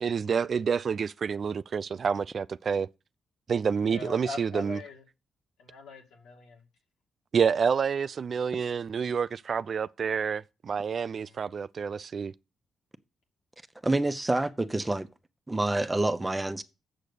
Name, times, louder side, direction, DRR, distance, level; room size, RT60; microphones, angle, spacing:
voice 1, 0.0-2.9 3.5-4.8 7.3-12.3, right 6 dB, 55° right, 0.4 m, -28 dB
voice 2, 3.9-5.0 5.6-6.6 11.2-11.5, left 3 dB, 80° left, 2.5 m, -42 dB
voice 3, 13.8-15.1 15.5-16.6, right 2 dB, 20° right, 1.1 m, -27 dB
7.7 x 6.5 x 6.9 m
hypercardioid pair, 45°, 0 cm